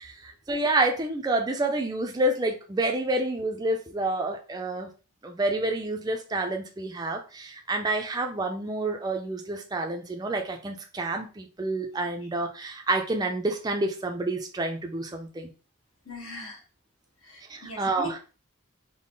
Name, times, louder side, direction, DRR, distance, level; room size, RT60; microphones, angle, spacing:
voice 1, 0.0-4.9 5.2-15.5 17.5-18.2, right 2 dB, 20° right, 3 dB, 0.4 m, -28 dB
voice 2, 16.0-16.6 17.2-18.2, equal, 80° left, -3 dB, 1.3 m, -39 dB
3.7 x 2.0 x 3.7 m, 0.34 s
head